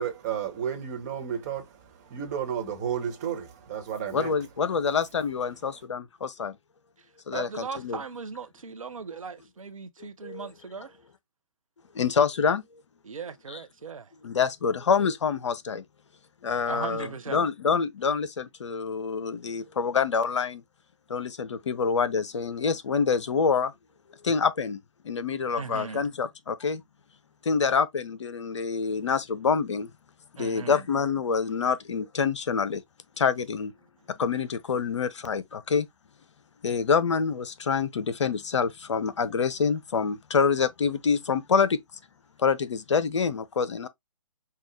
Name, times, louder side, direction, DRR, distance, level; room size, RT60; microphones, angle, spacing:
voice 1, 0.0-4.4, right 8 dB, 30° right, 1.4 m, -32 dB
voice 2, 4.1-6.6 7.3-8.0 10.2-10.5 11.9-12.6 13.5-13.6 14.2-15.8 16.4-20.6 21.1-23.7 24.2-24.8 25.0-26.8 27.4-29.9 30.4-32.8 33.2-33.7 34.2-35.9 36.6-41.8 42.4-43.9, left 5 dB, 55° left, 0.8 m, -26 dB
voice 3, 7.3-11.0 13.0-14.1 16.7-17.5 25.6-26.0 30.4-30.9, right 5 dB, 70° right, 0.7 m, -38 dB
5.6 x 2.4 x 3.2 m
figure-of-eight pair, 135°, 18 cm